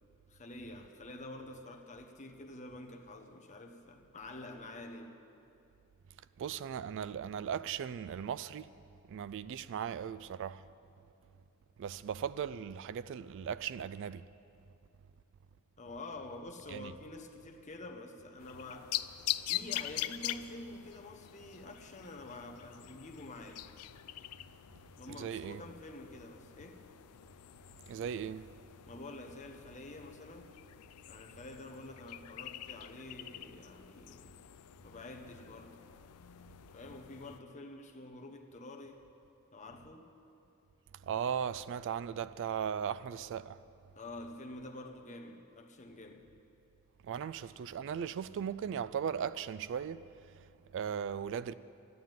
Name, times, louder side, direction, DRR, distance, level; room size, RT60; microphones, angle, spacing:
voice 1, 0.3-5.2 15.8-19.0 19.5-23.6 25.0-26.8 28.9-30.5 31.1-34.4 34.8-35.8 36.7-39.0 39.5-40.1 43.9-46.3 47.2-47.3, left 2 dB, 35° left, 1.1 m, -48 dB
voice 2, 6.4-8.7 9.1-10.7 11.8-14.3 16.7-16.9 25.1-25.6 27.9-28.5 41.0-43.6 47.0-50.5 50.7-51.5, right 8 dB, 55° right, 0.3 m, -37 dB
sound 1, 18.4-37.4, left 13 dB, 80° left, 0.4 m, -44 dB
13.0 x 9.5 x 9.2 m
head